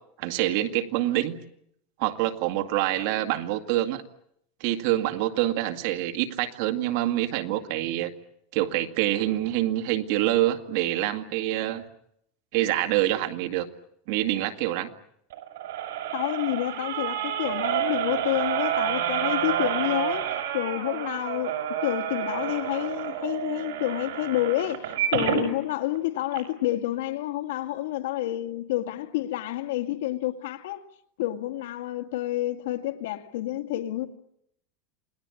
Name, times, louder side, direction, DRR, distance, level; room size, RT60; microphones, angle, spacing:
voice 1, 0.2-1.3 2.0-4.0 4.6-8.1 8.5-11.8 12.5-13.7 14.1-14.9, right 14 dB, 55° right, 2.0 m, -26 dB
sound 1, 15.3-25.5 26.0-26.1 26.3-26.4, right 10 dB, 75° right, 5.9 m, -29 dB
voice 2, 16.1-21.6 21.8-30.8 31.2-34.1, left 15 dB, 85° left, 2.0 m, -29 dB
28.0 x 19.5 x 8.5 m
supercardioid pair, 160°, 0 cm